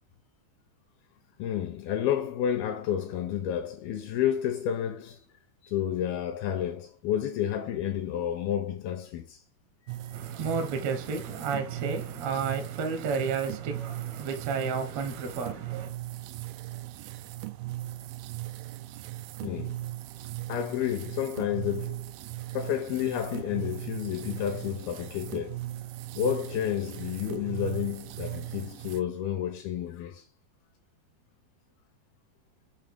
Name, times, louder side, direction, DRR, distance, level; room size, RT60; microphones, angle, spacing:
voice 1, 1.4-5.2 5.6-9.4 19.4-19.8 20.5-22.0 22.5-25.6 26.2-30.2, left 10 dB, 80° left, 2.3 m, -30 dB
sound 1, 9.9-29.0, right 16 dB, 90° right, 2.0 m, -38 dB
voice 2, 10.1-15.9, right 5 dB, 70° right, 1.6 m, -32 dB
7.4 x 2.8 x 5.3 m
omnidirectional pair, 4.9 m